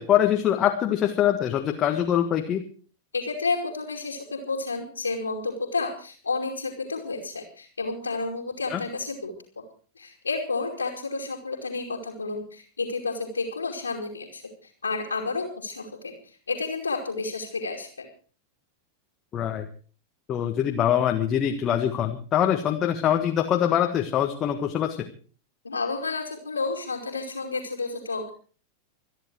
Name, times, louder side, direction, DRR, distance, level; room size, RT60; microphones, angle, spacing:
voice 1, 0.0-2.6 8.7-8.8 19.3-19.7 20.3-25.1, left 10 dB, 30° left, 4 dB, 1.5 m, -23 dB
voice 2, 3.1-9.3 10.0-18.1 25.6-28.3, left 3 dB, 75° left, -1 dB, 2.7 m, -31 dB
25.5 x 10.0 x 4.7 m, 0.41 s
figure-of-eight pair, 90°, 0 cm